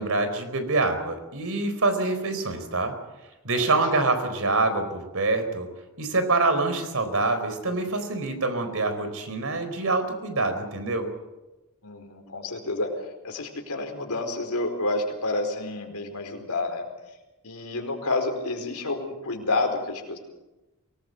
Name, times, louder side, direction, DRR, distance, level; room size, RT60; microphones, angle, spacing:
voice 1, 0.0-2.9 3.4-5.7 6.0-11.1, right 3 dB, 65° right, 8 dB, 4.3 m, -25 dB
voice 2, 11.8-12.9 13.2-16.9 17.4-20.2, left 2 dB, 90° left, 4 dB, 4.7 m, -29 dB
23.5 x 19.5 x 8.1 m, 1.0 s
head